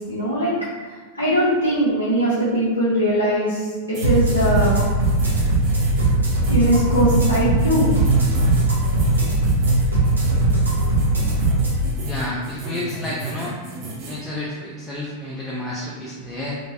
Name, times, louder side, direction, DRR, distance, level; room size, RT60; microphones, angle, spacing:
voice 1, 0.1-0.5 1.1-4.7 6.5-7.9, equal, 80° left, -10 dB, 0.7 m, -20 dB
sound 1, 3.9-14.2, right 3 dB, 40° right, 0.6 m, -27 dB
sound 2, 4.0-11.8, right 2 dB, 75° right, 0.7 m, -20 dB
voice 2, 12.0-13.5 14.0-16.6, left 1 dB, 15° left, -5 dB, 0.5 m, -30 dB
3.0 x 2.2 x 2.6 m, 1.5 s
figure-of-eight pair, 90°, 0 cm